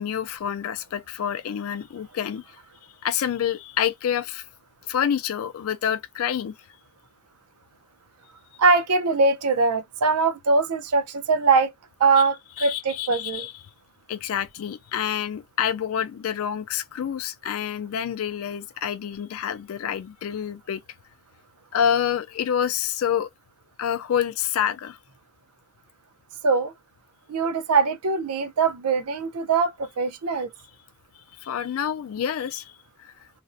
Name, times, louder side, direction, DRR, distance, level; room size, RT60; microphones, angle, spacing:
voice 1, 0.0-2.6 3.0-4.5 4.9-6.5 12.6-13.5 14.1-20.8 21.7-23.3 23.8-25.0 31.4-32.7 33.0-33.1, left 9 dB, 70° left, 0.3 m, -27 dB
voice 2, 8.6-11.7 12.0-13.5 26.4-26.7 27.3-30.5, right 4 dB, 90° right, 0.5 m, -22 dB
2.4 x 2.0 x 2.5 m
head